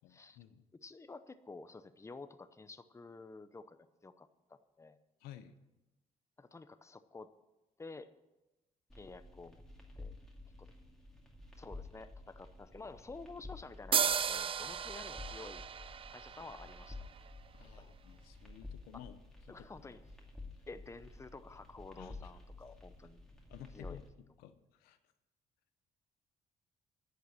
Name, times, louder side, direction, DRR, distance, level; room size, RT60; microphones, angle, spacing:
voice 1, 0.0-0.6 5.2-5.5 17.5-19.2 19.6-19.7 22.0-22.2 23.5-24.0 24.4-25.0, left 11 dB, 85° left, 10 dB, 0.8 m, -53 dB
voice 2, 0.8-5.0 6.4-7.3 7.8-8.1 8.9-9.6 10.0-10.1 10.6-10.7 11.6-15.6 16.1-17.0 17.8-17.9 19.5-20.0 20.7-23.2 23.7-24.0, left 3 dB, 20° left, 12 dB, 0.7 m, -51 dB
sound 1, 8.9-24.1, left 2 dB, 5° left, 2.3 m, -52 dB
sound 2, 13.9-17.5, right 7 dB, 35° right, 0.4 m, -35 dB
10.5 x 6.9 x 8.7 m, 1.0 s
supercardioid pair, 70°, 15 cm